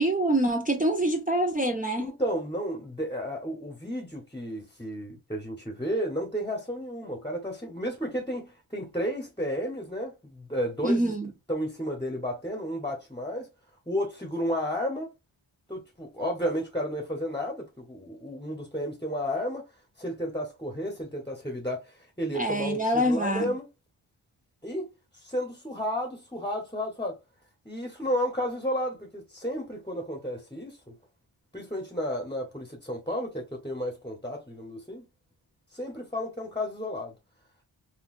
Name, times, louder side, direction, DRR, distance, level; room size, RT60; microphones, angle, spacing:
voice 1, 0.0-2.1 10.8-11.3 22.3-23.5, right 1 dB, 20° right, 0.4 m, -25 dB
voice 2, 2.0-11.1 11.5-13.5 13.9-15.1 15.7-19.7 20.0-23.6 24.6-24.9 25.1-27.2 27.6-30.9 31.5-35.0 35.7-37.1, equal, 10° left, 0.8 m, -32 dB
3.8 x 2.3 x 2.4 m
wide cardioid pair, 85°, 47 cm